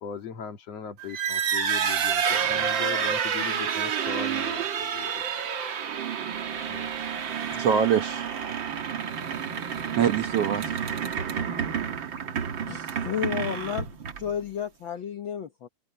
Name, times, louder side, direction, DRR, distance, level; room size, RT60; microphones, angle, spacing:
voice 1, 0.0-5.3 6.7-6.9 7.5-7.7, left 7 dB, 55° left, 2.8 m, -39 dB
sound 1, 1.0-14.4, right 7 dB, 45° right, 1.7 m, -29 dB
voice 2, 7.4-8.3 9.9-11.0 12.1-12.2, right 8 dB, 65° right, 1.7 m, -25 dB
voice 3, 12.7-13.9 14.2-15.7, left 9 dB, 75° left, 1.1 m, -32 dB
omnidirectional pair, 3.8 m